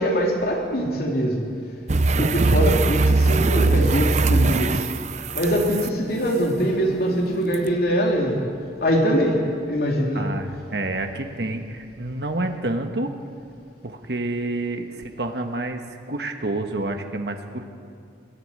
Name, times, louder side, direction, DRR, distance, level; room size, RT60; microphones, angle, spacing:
voice 1, 0.0-1.4 2.2-4.9 5.3-8.4 8.8-9.4 9.7-10.2, equal, 55° left, 0 dB, 3.1 m, -22 dB
sound 1, 1.9-5.9 7.5-7.7, right 3 dB, 40° right, 0.7 m, -20 dB
voice 2, 10.1-13.1 13.8-17.6, right 2 dB, 65° right, 5 dB, 1.5 m, -29 dB
20.5 x 13.5 x 9.7 m, 2.4 s
head